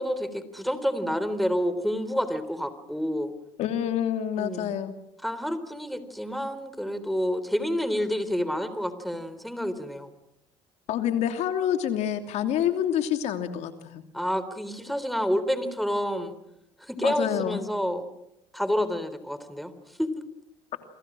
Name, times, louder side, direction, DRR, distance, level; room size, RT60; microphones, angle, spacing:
voice 1, 0.0-3.3 4.4-4.7 5.2-10.1 14.1-16.3 16.8-18.0 18.5-19.7 20.0-20.1, equal, ahead, 12 dB, 3.6 m, -29 dB
voice 2, 3.6-4.9 10.9-14.0 17.0-17.6, left 10 dB, 65° left, 7 dB, 2.8 m, -27 dB
28.0 x 24.5 x 6.3 m, 0.79 s
supercardioid pair, 85°, 12 cm